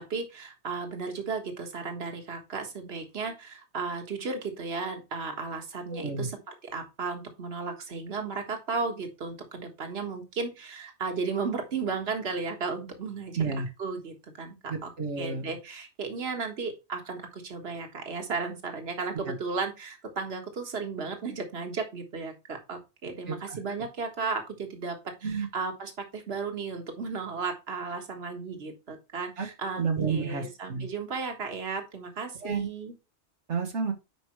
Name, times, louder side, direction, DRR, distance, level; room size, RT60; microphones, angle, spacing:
voice 1, 0.0-6.4 6.6-13.4 13.8-14.9 15.2-29.8 30.1-32.9, right 4 dB, 65° right, 5 dB, 1.7 m, -34 dB
voice 2, 5.9-6.3 13.3-13.7 14.7-15.5 19.3-19.4 23.3-23.6 25.2-25.5 29.4-29.5 29.7-30.9 32.4-32.7 33.5-33.9, right 5 dB, 85° right, 3 dB, 1.6 m, -30 dB
10.0 x 4.8 x 3.1 m, 0.27 s
omnidirectional pair, 1.2 m